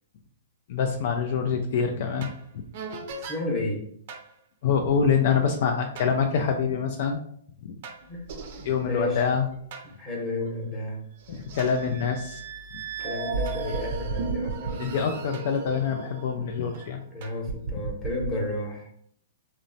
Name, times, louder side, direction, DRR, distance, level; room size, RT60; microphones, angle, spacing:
voice 1, 0.7-2.3 4.6-7.2 7.6-7.7 8.6-9.5 11.3-12.4 14.8-17.0, left 6 dB, 55° left, 4 dB, 0.3 m, -25 dB
sound 1, 2.2-2.4 2.7-3.4 4.1-4.3 6.0-6.1 7.8-9.9 10.5-10.6 11.2-16.9 17.2-18.3, right 4 dB, 55° right, 0.4 m, -35 dB
voice 2, 3.2-3.9 8.1-8.3 8.8-9.2 9.8-11.0 13.0-14.8 17.1-18.9, left 1 dB, 15° left, -2 dB, 0.8 m, -31 dB
2.9 x 2.0 x 2.6 m, 0.65 s
hypercardioid pair, 135°, 0 cm